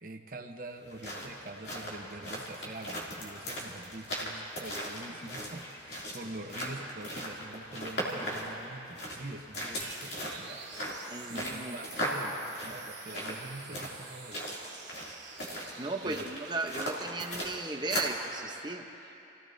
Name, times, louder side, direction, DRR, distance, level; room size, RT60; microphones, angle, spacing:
voice 1, 0.0-10.7 11.3-14.4 16.0-16.3, right 2 dB, 45° right, 4 dB, 1.0 m, -45 dB
sound 1, 0.8-18.2, equal, 65° left, 2.7 m, -38 dB
sound 2, 9.8-17.4, right 7 dB, 65° right, 1.2 m, -49 dB
voice 2, 11.1-11.8 15.8-19.3, right 3 dB, 25° right, 3 dB, 0.8 m, -36 dB
29.5 x 17.0 x 2.7 m, 2.9 s
head